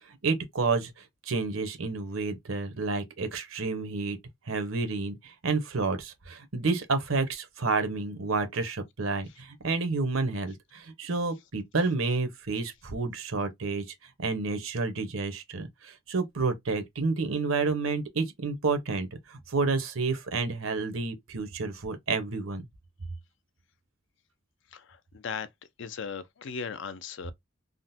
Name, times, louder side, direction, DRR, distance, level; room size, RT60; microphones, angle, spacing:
voice 1, 0.1-0.9 1.3-4.2 4.5-13.8 14.2-22.7, right 3 dB, 85° right, 0.9 m, -30 dB
voice 2, 24.7-25.5 25.8-27.3, left 6 dB, 65° left, 0.4 m, -37 dB
3.6 x 2.1 x 2.6 m
head